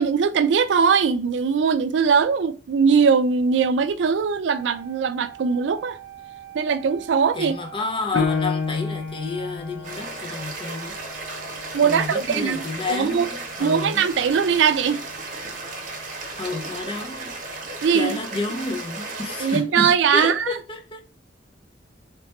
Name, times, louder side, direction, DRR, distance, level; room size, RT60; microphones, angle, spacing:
voice 1, 0.0-6.0 6.5-7.6 8.1-8.3 11.7-12.6 12.9-13.3 13.6-15.0 17.8-18.2 19.4-20.5, right 6 dB, 75° right, 0.4 m, -20 dB
Wind instrument woodwind instrument, 4.5-10.0, right 11 dB, 20° right, 0.8 m, -43 dB
voice 2, 7.3-11.0 11.8-14.1 16.4-17.3 17.9-21.0, left 3 dB, 30° left, 0.6 m, -30 dB
Piano, 8.2-13.3 13.8-13.9 14.5-15.0, left 5 dB, 75° left, 0.6 m, -31 dB
sound 1, 9.8-19.6, right 3 dB, 45° right, 0.8 m, -35 dB
3.2 x 2.9 x 3.1 m
head